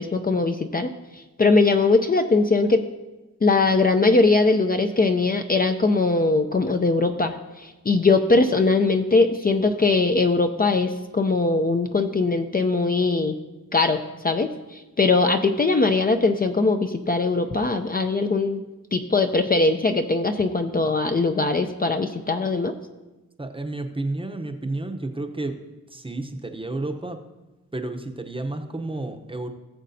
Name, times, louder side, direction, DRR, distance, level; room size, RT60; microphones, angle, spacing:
voice 1, 0.0-2.8 3.4-13.4 13.7-18.6 18.9-22.7, left 3 dB, 30° left, 6 dB, 0.5 m, -21 dB
voice 2, 23.4-25.6 25.9-27.2 27.7-29.5, right 2 dB, 15° right, 5 dB, 0.7 m, -31 dB
18.0 x 7.3 x 2.7 m, 1.1 s
wide cardioid pair, 110°, 33 cm